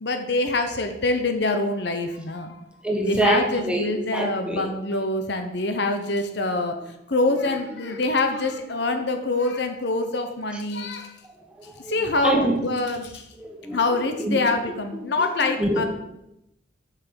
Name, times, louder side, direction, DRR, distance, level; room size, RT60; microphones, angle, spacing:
voice 1, 0.0-2.6 3.0-6.7 7.1-11.1 11.9-13.2 13.7-15.8, left 2 dB, 60° left, 6 dB, 0.9 m, -25 dB
voice 2, 2.8-4.6 10.5-10.6 11.6-12.6 13.4-14.8 15.2-15.9, right 1 dB, 5° right, 1 dB, 1.5 m, -26 dB
7.7 x 5.9 x 6.9 m, 0.85 s
head